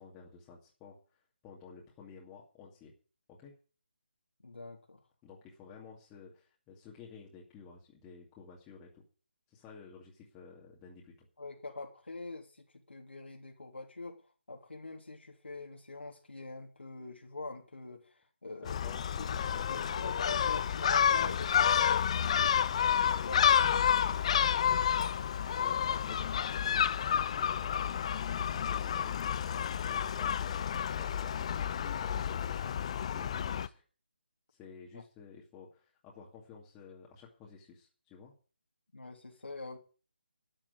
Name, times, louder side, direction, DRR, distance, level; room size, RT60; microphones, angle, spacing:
voice 1, 0.0-2.9 3.3-3.5 5.2-9.0 9.5-11.3 18.6-20.0 23.0-23.7 24.8-25.1 25.6-29.6 29.9-31.5 31.8-33.8 34.5-38.3, left 5 dB, 15° left, -3 dB, 2.5 m, -53 dB
voice 2, 4.4-5.0 11.4-18.8 19.1-19.4 19.7-22.6 23.2-23.4 23.9-24.1 34.9-35.0 38.9-39.8, left 3 dB, 85° left, 0 dB, 3.2 m, -45 dB
Gull seagull, 18.7-33.7, left 8 dB, 35° left, 0.6 m, -30 dB
12.5 x 7.4 x 9.5 m, 0.38 s
figure-of-eight pair, 160°, 6 cm